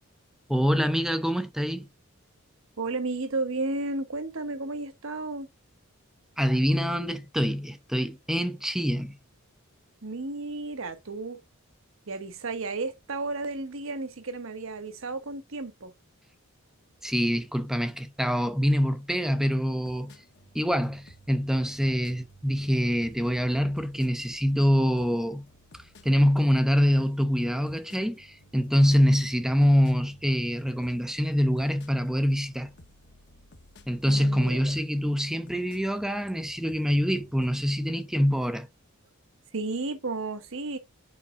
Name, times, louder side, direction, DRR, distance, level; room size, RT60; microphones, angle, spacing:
voice 1, 0.5-1.9 6.4-9.2 17.0-20.2 20.5-25.5 26.0-32.7 33.9-38.7, equal, ahead, 0.5 m, -25 dB
voice 2, 2.8-5.5 10.0-11.4 12.1-15.9 34.0-34.6 39.5-40.8, right 3 dB, 65° right, 1.1 m, -33 dB
sound 1, 19.8-37.5, equal, 55° left, 1.1 m, -55 dB
8.2 x 5.3 x 2.5 m
head